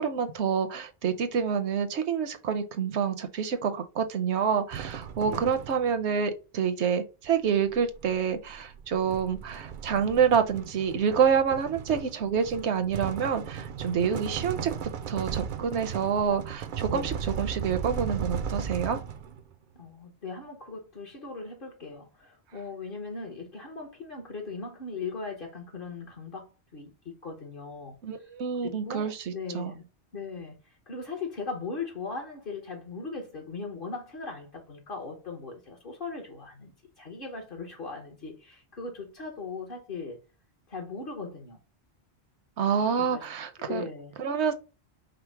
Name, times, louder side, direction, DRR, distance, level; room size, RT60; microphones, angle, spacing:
voice 1, 0.0-14.7 15.1-19.0 28.0-29.7 42.6-43.8 44.2-44.5, right 7 dB, 75° right, 1.0 m, -27 dB
sound 1, 4.7-6.0 7.2-19.5, right 8 dB, 55° right, 0.6 m, -36 dB
voice 2, 5.2-5.6 14.0-14.3 16.9-17.2 19.7-28.0 28.6-30.5 30.9-36.7 37.0-40.2 40.7-41.6 43.0-43.2 43.7-44.1, left 4 dB, 50° left, 1.2 m, -39 dB
5.1 x 2.1 x 4.5 m
omnidirectional pair, 1.2 m